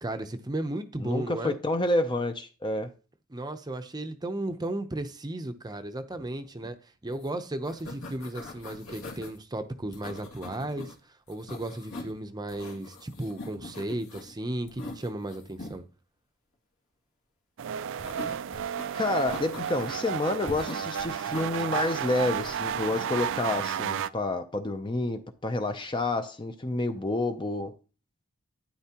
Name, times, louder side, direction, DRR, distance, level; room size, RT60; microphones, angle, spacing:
voice 1, 0.0-1.6 3.3-11.0 11.3-15.8, right 1 dB, 20° right, 0.7 m, -35 dB
voice 2, 1.0-2.9 18.9-27.8, left 2 dB, 20° left, 0.6 m, -29 dB
sound 1, 7.1-7.3 7.5-9.4 9.9-10.9 11.3-12.2 12.5-14.3 14.7-15.8 18.0-18.9 19.3-20.1 20.5-21.5 22.3-22.8, left 2 dB, 65° left, 2.3 m, -42 dB
sound 2, 17.6-24.1, right 8 dB, 60° right, 0.4 m, -32 dB
11.5 x 9.9 x 2.9 m
head